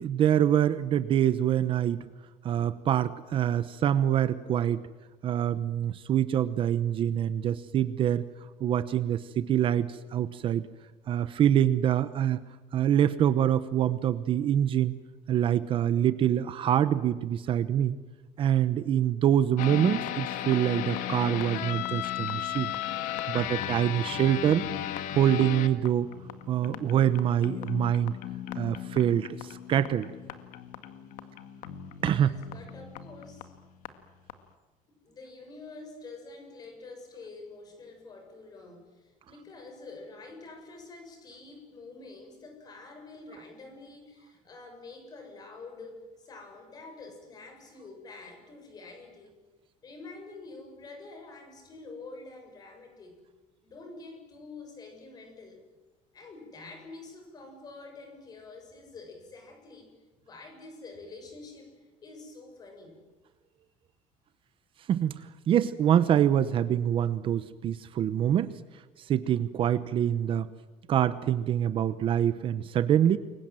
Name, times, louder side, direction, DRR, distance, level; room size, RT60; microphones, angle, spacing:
voice 1, 0.0-2.1 2.4-4.8 5.2-8.3 8.6-10.7 11.1-12.4 12.7-15.0 15.3-18.0 18.4-22.7 23.3-24.6 25.1-26.1 26.5-28.2 28.5-30.1 32.0-32.3 64.9-68.6 69.0-70.5 70.9-73.2, right 10 dB, 40° right, 14 dB, 0.9 m, -25 dB
sound 1, 19.6-33.9 34.3-34.4, left 11 dB, 70° left, 2.1 m, -36 dB
voice 2, 32.0-33.5 34.9-49.4 49.8-53.2 53.6-55.6 56.1-59.9 60.2-63.0, left 3 dB, 30° left, 4 dB, 7.1 m, -47 dB
29.0 x 23.0 x 7.7 m, 1.3 s
cardioid pair, 180°, 14 cm